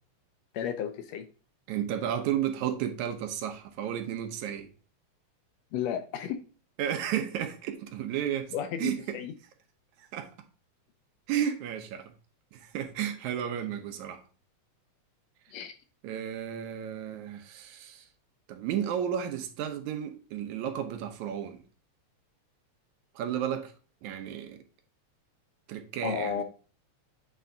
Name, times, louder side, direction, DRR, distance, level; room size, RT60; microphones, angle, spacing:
voice 1, 0.5-1.3 5.7-6.4 8.5-9.3 15.5-15.7 26.0-26.4, left 8 dB, 75° left, 1.7 m, -33 dB
voice 2, 1.7-4.7 6.8-8.5 8.8-9.2 10.0-10.3 11.3-12.1 12.5-14.2 16.0-18.1 18.5-21.6 23.2-23.7 24.0-24.6 25.7-26.4, right 9 dB, 85° right, 2.2 m, -33 dB
8.7 x 3.4 x 3.8 m
omnidirectional pair, 3.3 m